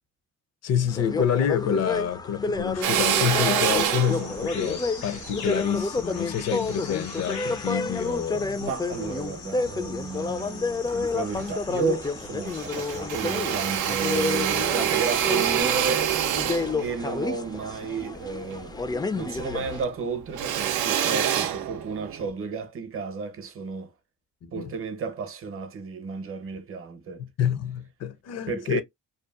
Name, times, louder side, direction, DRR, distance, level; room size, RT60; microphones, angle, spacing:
voice 1, 0.6-8.6 24.4-24.7 27.2-28.8, left 8 dB, 60° left, 0.6 m, -27 dB
sound 1, 0.9-19.8, left 3 dB, 15° left, 0.3 m, -30 dB
Drill, 2.8-7.4 7.9-9.1 9.5-10.5 10.8-10.9 11.2-12.2 12.5-19.1 19.4-22.3, right 10 dB, 90° right, 0.5 m, -27 dB
sound 2, 3.6-15.6, left 4 dB, 85° left, 1.3 m, -43 dB
voice 2, 8.6-16.2 16.8-18.7 19.1-23.9 24.5-27.2 28.5-28.8, right 4 dB, 45° right, 0.7 m, -32 dB
2.7 x 2.3 x 2.2 m
cardioid pair, 90°, 30 cm